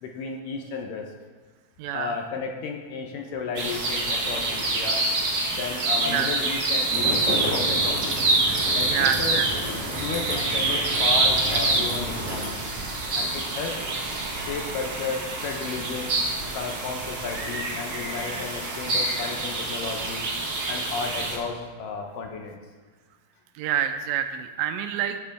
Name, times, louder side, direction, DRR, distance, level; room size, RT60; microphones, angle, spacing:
voice 1, 0.0-1.0 1.9-5.0 5.5-8.2 8.8-9.4 10.0-12.6 13.1-13.9 14.4-16.2 16.5-20.3 20.7-22.6, left 5 dB, 75° left, 2 dB, 2.2 m, -33 dB
voice 2, 1.8-2.2 6.1-6.4 8.9-9.5 23.6-25.2, right 10 dB, 80° right, 8 dB, 2.2 m, -27 dB
sound 1, 3.5-21.4, right 2 dB, 55° right, 1.2 m, -26 dB
sound 2, 6.9-12.5, equal, 10° right, 2.4 m, -33 dB
15.0 x 6.9 x 3.5 m, 1.4 s
omnidirectional pair, 4.2 m